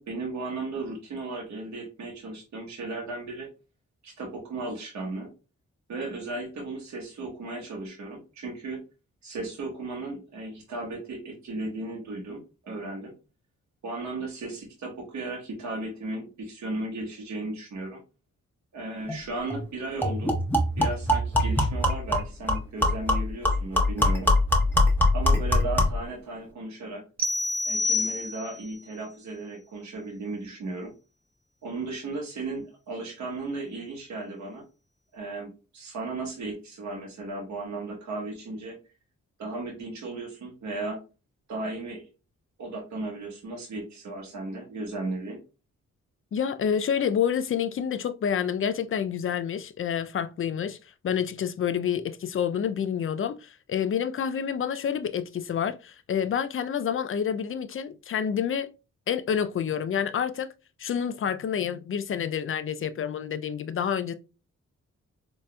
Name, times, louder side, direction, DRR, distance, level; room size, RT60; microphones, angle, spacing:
voice 1, 0.0-3.5 4.0-5.3 5.9-8.8 9.2-13.1 13.8-18.0 18.7-20.4 20.8-24.3 25.1-27.0 27.6-30.9 31.6-34.7 35.1-38.8 39.4-41.0 41.5-42.1 42.6-45.4, right 2 dB, 70° right, 1.0 m, -35 dB
sound 1, 19.1-19.2 19.5-19.6 20.0-26.0, left 1 dB, 5° left, 1.1 m, -23 dB
sound 2, 27.2-28.7, left 2 dB, 30° right, 0.9 m, -28 dB
voice 2, 46.3-50.8 51.0-58.7 59.1-60.5 60.8-64.1, left 8 dB, 45° left, 0.4 m, -28 dB
4.0 x 2.6 x 2.2 m
cardioid pair, 55°, 29 cm